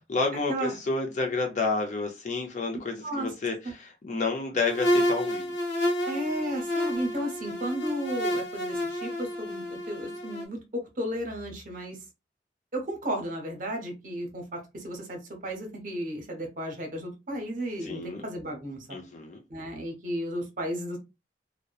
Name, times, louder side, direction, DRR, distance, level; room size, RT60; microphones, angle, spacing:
voice 1, 0.1-5.5 17.8-18.2 18.9-19.4, left 3 dB, 40° left, 0.4 m, -30 dB
sound 1, 4.6-10.4, equal, 80° left, 0.6 m, -29 dB
voice 2, 6.1-12.0 12.7-19.0 19.5-21.0, equal, 45° right, 0.8 m, -34 dB
2.7 x 2.1 x 2.3 m
head